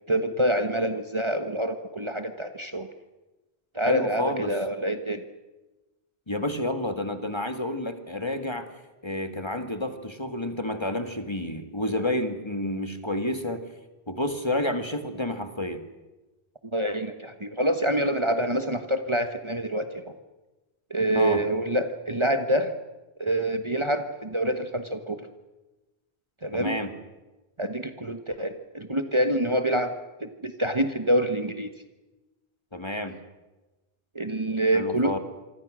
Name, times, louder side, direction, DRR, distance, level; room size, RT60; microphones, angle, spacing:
voice 1, 0.1-2.9 3.7-5.2 16.7-20.1 20.9-22.7 23.2-25.2 26.4-26.8 27.6-29.9 30.2-31.7 34.1-35.2, right 1 dB, 30° right, 7 dB, 1.3 m, -26 dB
voice 2, 3.9-4.6 6.3-8.7 9.0-13.6 14.1-15.8 21.2-21.4 26.5-26.9 32.7-33.2 34.7-35.2, left 1 dB, 25° left, 8 dB, 1.7 m, -30 dB
26.5 x 24.0 x 6.3 m, 1.1 s
omnidirectional pair, 1.1 m